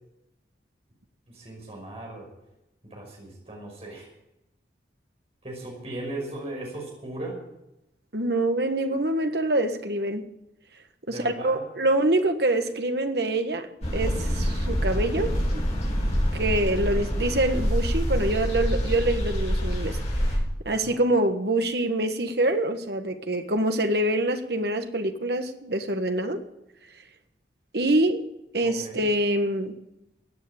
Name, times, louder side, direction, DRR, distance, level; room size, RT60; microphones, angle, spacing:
voice 1, 1.3-2.3 2.8-4.1 5.4-7.4 11.1-11.7 16.9-17.1 20.7-21.0 28.6-29.1, right 2 dB, 35° right, -1 dB, 5.6 m, -38 dB
voice 2, 8.1-10.2 11.1-15.6 16.3-20.0 20.6-26.4 27.7-28.2 28.5-29.8, right 1 dB, 60° right, 7 dB, 1.5 m, -25 dB
sound 1, 13.8-20.4, equal, 40° left, 6.0 m, -26 dB
16.5 x 9.5 x 8.5 m, 0.89 s
head